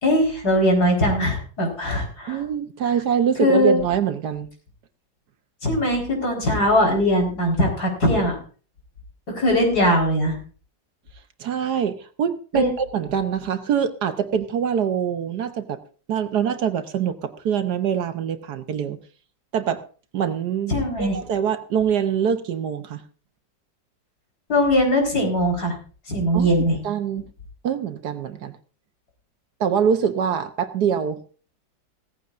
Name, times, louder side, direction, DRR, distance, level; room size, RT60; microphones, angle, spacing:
voice 1, 0.0-2.4 3.4-3.8 5.6-8.3 9.3-10.4 12.5-12.7 20.7-21.2 24.5-25.7 26.1-26.8, equal, 55° left, 1 dB, 4.8 m, -20 dB
voice 2, 2.3-4.5 11.4-15.8 16.1-19.0 19.5-19.8 20.1-23.0 26.3-27.3 27.6-28.5 29.6-31.2, right 8 dB, 65° right, 9 dB, 1.3 m, -24 dB
17.5 x 15.0 x 2.5 m, 0.39 s
omnidirectional pair, 2.0 m